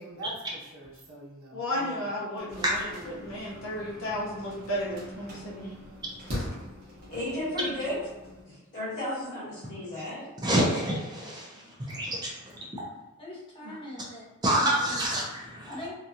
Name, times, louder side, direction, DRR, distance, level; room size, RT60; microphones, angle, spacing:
voice 1, 0.0-2.1, right 1 dB, 70° right, -6 dB, 1.0 m, -44 dB
voice 2, 1.5-5.7 6.3-6.6 13.6-13.7, equal, 75° left, -5 dB, 0.7 m, -34 dB
sound 1, 2.5-8.4, left 1 dB, 45° right, 1.0 m, -42 dB
voice 3, 7.1-8.0 8.5-10.3, left 1 dB, 50° left, -13 dB, 1.4 m, -34 dB
voice 4, 10.4-12.8 14.4-15.7, right 1 dB, 20° right, -4 dB, 0.5 m, -28 dB
voice 5, 13.2-14.8 15.7-15.9, left 1 dB, 25° left, -6 dB, 0.8 m, -40 dB
2.9 x 2.3 x 2.5 m, 1.1 s
head